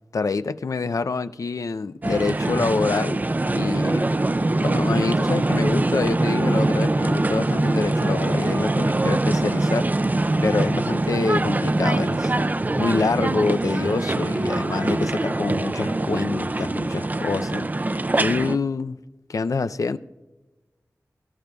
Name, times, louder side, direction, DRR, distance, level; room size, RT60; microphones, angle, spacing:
voice 1, 0.1-4.1 4.6-9.9 10.4-12.3 12.8-17.7 18.2-19.0 19.3-20.0, left 4 dB, 65° left, 0.5 m, -26 dB
sound 1, 2.0-18.6, right 2 dB, 30° right, 0.4 m, -23 dB
23.0 x 13.5 x 2.3 m
wide cardioid pair, 65°, 6 cm